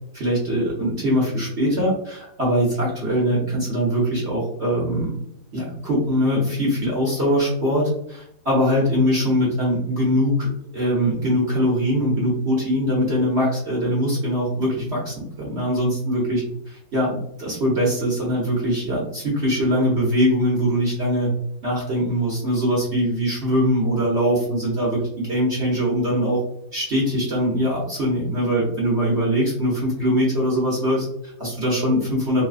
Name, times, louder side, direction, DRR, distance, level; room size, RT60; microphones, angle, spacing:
voice 1, 0.1-5.1 5.5-10.5 10.7-21.3 21.6-26.4 26.7-32.5, equal, 60° right, -4 dB, 0.7 m, -22 dB
3.7 x 2.8 x 2.4 m, 0.77 s
omnidirectional pair, 2.3 m